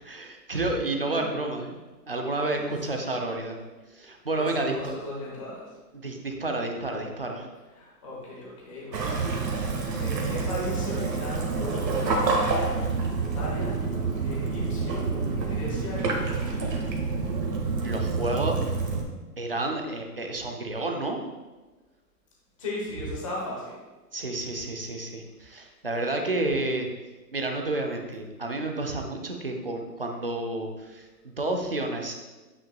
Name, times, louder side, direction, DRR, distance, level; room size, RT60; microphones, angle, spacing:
voice 1, 0.1-1.7 2.1-3.6 3.9-4.9 5.9-7.5 17.8-18.6 19.4-21.2 24.1-26.9 27.3-32.1, right 2 dB, 35° right, 2 dB, 0.5 m, -30 dB
voice 2, 4.3-5.8 7.7-9.4 9.7-12.5 13.2-13.8 14.2-16.5 22.6-23.8, left 1 dB, 20° left, -5 dB, 1.0 m, -37 dB
Waves surf / Splash splatter / Trickle dribble, 8.9-19.0, right 4 dB, 85° right, 1.8 m, -28 dB
8.7 x 5.9 x 2.2 m, 1.2 s
hypercardioid pair, 180°, 50 cm